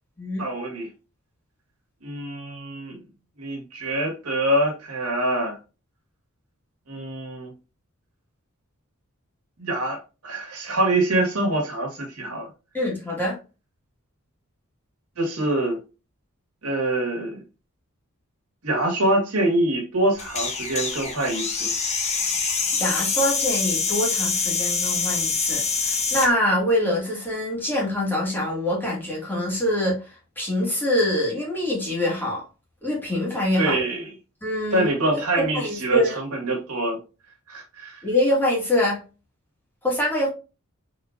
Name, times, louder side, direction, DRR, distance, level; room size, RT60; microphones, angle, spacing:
voice 1, 0.4-0.9 2.0-3.0 3.4-5.6 6.9-7.5 9.6-12.5 15.2-15.8 16.6-17.4 18.6-21.7 33.6-34.1 34.7-37.0 37.5-38.0, right 1 dB, 85° right, 1.6 m, -25 dB
voice 2, 12.7-13.4 22.8-30.0 30.4-32.4 32.8-33.8 34.4-36.1 38.0-39.0 39.8-40.3, left 1 dB, 10° left, 1.9 m, -24 dB
sound 1, 20.2-26.3, left 5 dB, 30° left, 0.9 m, -25 dB
4.2 x 3.8 x 2.4 m
head